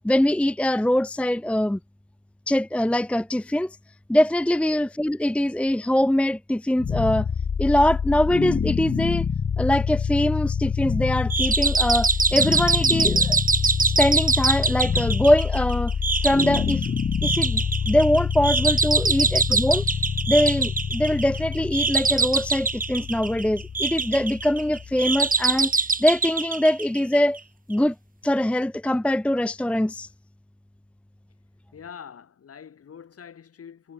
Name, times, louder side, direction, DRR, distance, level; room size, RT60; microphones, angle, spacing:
voice 1, 0.0-1.8 2.5-3.8 4.1-7.3 7.6-9.3 9.6-15.9 16.2-16.9 17.2-19.8 20.3-27.4 27.7-27.9 28.2-30.1, left 1 dB, 5° left, 0.7 m, -23 dB
sound 1, 6.8-25.8, left 6 dB, 35° left, 1.1 m, -27 dB
sound 2, 11.3-27.4, right 4 dB, 30° right, 2.8 m, -24 dB
voice 2, 31.7-33.9, left 7 dB, 50° left, 6.6 m, -44 dB
cardioid pair, 90°, 30 cm